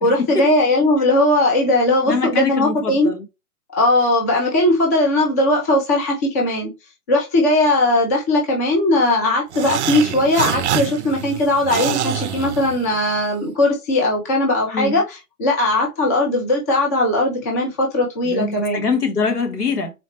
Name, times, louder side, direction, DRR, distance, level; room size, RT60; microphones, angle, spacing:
voice 1, 0.0-3.1 3.8-6.7 7.1-15.0 15.4-17.7 17.9-18.8, left 1 dB, 10° left, 0.4 m, -18 dB
voice 2, 2.1-3.2 14.7-15.0 18.2-19.9, left 5 dB, 80° left, 1.5 m, -23 dB
sound 1, 9.5-13.2, right 9 dB, 50° right, 0.5 m, -25 dB
4.0 x 3.1 x 2.9 m
figure-of-eight pair, 125°, 45 cm